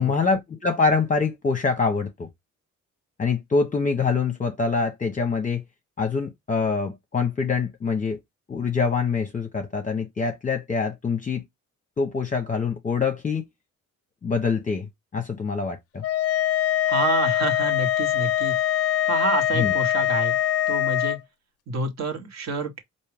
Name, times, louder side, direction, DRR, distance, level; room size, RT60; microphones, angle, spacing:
voice 1, 0.0-2.3 3.2-5.6 6.0-8.2 8.5-11.4 12.0-13.4 14.2-16.0 19.5-19.7, left 5 dB, 25° left, 0.8 m, -25 dB
sound 1, 16.0-21.2, left 12 dB, 50° left, 0.4 m, -23 dB
voice 2, 16.9-18.5 19.1-20.4 20.7-21.2 21.7-22.7, right 3 dB, 60° right, 1.5 m, -28 dB
4.5 x 2.7 x 3.4 m
cardioid pair, 90°, 30 cm